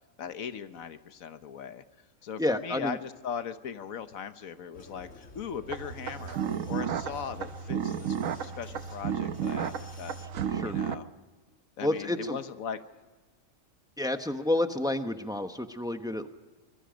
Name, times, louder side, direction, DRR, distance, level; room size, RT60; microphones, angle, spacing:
voice 1, 0.2-1.8 2.2-6.4 6.7-8.2 8.4-11.1 11.8-12.8, left 7 dB, 90° left, 11 dB, 1.4 m, -39 dB
voice 2, 2.4-3.0 10.5-10.8 11.8-12.4 14.0-16.3, left 1 dB, 5° right, 7 dB, 0.9 m, -29 dB
Vehicle, 4.7-10.3, left 2 dB, 65° left, 2.3 m, -51 dB
sound 1, 5.7-11.0, right 8 dB, 80° right, 1.3 m, -33 dB
25.5 x 21.5 x 5.2 m, 1.3 s
omnidirectional pair, 1.4 m